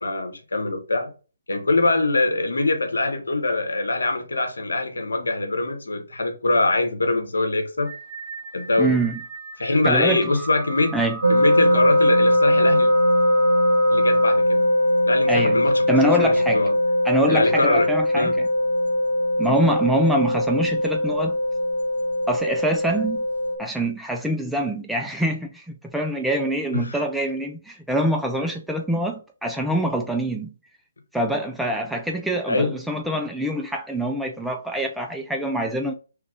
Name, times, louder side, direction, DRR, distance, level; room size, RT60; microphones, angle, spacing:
voice 1, 0.0-1.1 1.5-7.9 8.5-9.0 9.6-11.0 11.3-12.9 13.9-14.7 15.1-15.8 16.2-16.7 17.3-17.9 18.1-18.4 26.7-27.0 32.5-32.7, left 2 dB, 80° left, 0.9 m, -23 dB
sound 1, 7.9-14.4, right 2 dB, 15° left, 1.0 m, -35 dB
voice 2, 8.8-9.2 9.8-10.2 10.9-11.2 15.3-16.6 17.0-18.3 19.4-21.3 22.3-23.3 23.6-30.5 31.1-35.9, right 1 dB, ahead, 0.4 m, -24 dB
sound 2, 11.2-23.6, left 1 dB, 85° right, 0.8 m, -20 dB
3.2 x 2.4 x 3.4 m
figure-of-eight pair, 145°, 0 cm